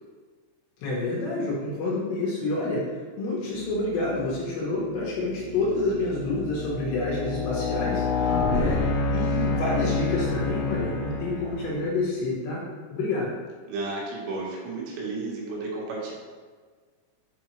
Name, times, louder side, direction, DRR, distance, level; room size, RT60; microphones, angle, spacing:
voice 1, 0.8-2.8 3.2-12.6 12.9-13.4, left 2 dB, 70° left, -5 dB, 2.9 m, -28 dB
sound 1, 4.1-4.4 5.0-11.8, left 3 dB, 90° left, 3.6 m, -28 dB
voice 2, 13.7-16.1, right 3 dB, 80° right, -4 dB, 3.8 m, -32 dB
7.0 x 5.6 x 3.1 m, 1.5 s
omnidirectional pair, 5.8 m